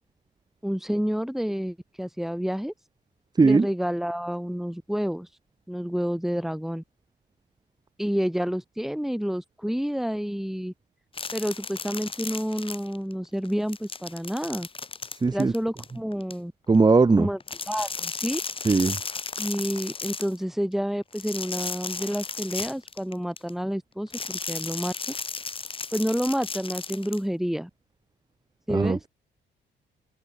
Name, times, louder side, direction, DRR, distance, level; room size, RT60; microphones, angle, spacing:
voice 1, 0.6-2.7 3.4-5.3 5.7-6.8 8.0-10.7 11.3-14.7 15.3-16.5 17.2-17.4 17.7-18.4 19.4-25.1 25.9-27.7 28.7-29.0, equal, ahead, 7.1 m, -29 dB
sound 1, 11.1-13.1 13.4-16.3 17.4-20.4 21.1-23.5 24.1-27.2, left 4 dB, 25° left, 1.3 m, -35 dB
voice 2, 15.2-15.5 16.7-17.3 18.6-19.0 28.7-29.1, right 4 dB, 20° right, 1.0 m, -19 dB
cardioid pair, 90°, 20 cm